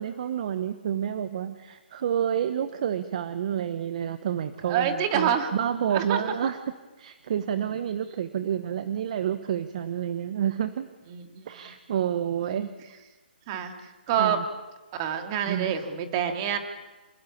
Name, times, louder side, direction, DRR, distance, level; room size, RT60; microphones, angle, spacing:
voice 1, 0.0-6.6 7.0-10.9 11.5-13.0 14.2-14.4 15.5-15.7, right 9 dB, 40° right, 11 dB, 1.2 m, -29 dB
voice 2, 4.7-5.5 5.9-6.2 7.5-7.7 11.1-11.4 12.4-12.7 13.5-13.7 14.1-14.4 14.9-16.6, right 8 dB, 25° right, 6 dB, 2.6 m, -27 dB
27.0 x 19.5 x 8.6 m, 1.2 s
hypercardioid pair, 160°, 6 cm